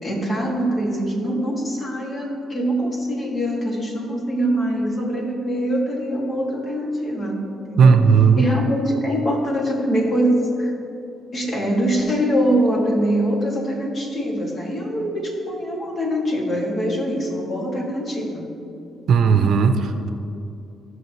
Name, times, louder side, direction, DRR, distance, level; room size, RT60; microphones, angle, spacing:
voice 1, 0.0-8.0 8.4-10.7 11.3-18.5, equal, 40° left, -1 dB, 2.2 m, -23 dB
voice 2, 7.8-8.5 19.1-20.1, right 6 dB, 65° right, 7 dB, 0.7 m, -15 dB
16.5 x 6.3 x 3.1 m, 2.7 s
cardioid pair, 90°, 0 cm